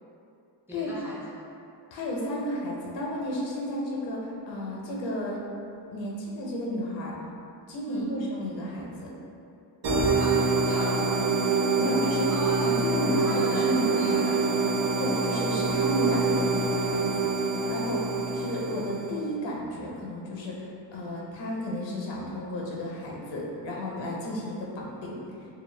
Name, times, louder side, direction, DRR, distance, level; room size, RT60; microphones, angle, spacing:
voice 1, 0.7-1.4 7.9-8.2 10.2-11.2 12.3-12.9 13.2-14.5, equal, 5° right, -6 dB, 0.3 m, -38 dB
voice 2, 1.9-5.4 5.9-7.2 7.7-9.1 11.8-12.3 12.6-14.2 15.0-17.3 17.7-25.5, equal, 80° left, -3 dB, 0.7 m, -32 dB
sound 1, 9.8-19.2, right 3 dB, 65° right, 0.6 m, -25 dB
2.3 x 2.1 x 3.1 m, 2.6 s
cardioid pair, 105°, 44 cm